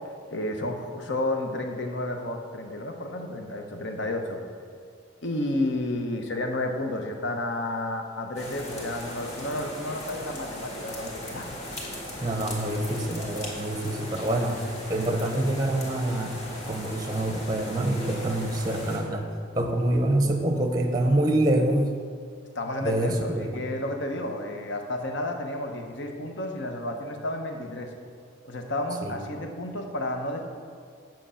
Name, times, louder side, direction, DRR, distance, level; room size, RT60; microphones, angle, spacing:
voice 1, 0.3-4.4 5.2-11.8 22.5-27.9 28.4-30.4, left 1 dB, 60° left, 4 dB, 0.9 m, -31 dB
sound 1, 8.3-19.0, left 1 dB, 35° left, 1.7 m, -38 dB
voice 2, 12.2-14.6 14.9-16.4 16.7-19.2 19.5-21.9 22.8-23.6 29.0-29.2, right 1 dB, 20° right, 4 dB, 0.7 m, -26 dB
7.8 x 7.5 x 5.7 m, 2.2 s
head